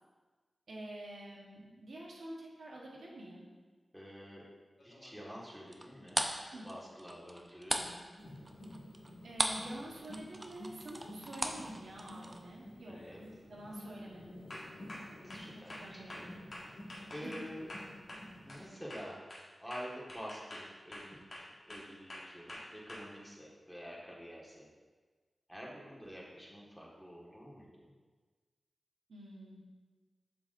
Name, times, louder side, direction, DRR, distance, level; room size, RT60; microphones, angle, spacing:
voice 1, 0.7-3.5 6.5-6.7 7.2-7.3 7.8-8.1 9.2-13.0 13.5-14.4 15.5-16.4 17.2-17.5 18.2-18.4 29.1-29.6, right 1 dB, 85° right, -3 dB, 1.2 m, -48 dB
voice 2, 3.9-4.5 4.8-6.3 6.6-7.8 12.9-13.2 15.2-16.8 17.1-17.7 18.4-19.3 19.6-24.7 25.5-27.9, equal, ahead, -4 dB, 1.6 m, -48 dB
sound 1, 4.8-5.5 9.7-9.8 11.3-11.6 12.1-12.4 12.9-13.2 13.7-13.9 14.5-18.7 18.9-23.0, left 1 dB, 55° left, 1.6 m, -49 dB
sound 2, 5.7-9.7 10.0-12.4, right 1 dB, 30° right, 0.5 m, -36 dB
sound 3, 8.2-18.6, equal, 75° left, 1.8 m, -51 dB
7.5 x 5.9 x 2.6 m, 1.3 s
wide cardioid pair, 75°, 0 cm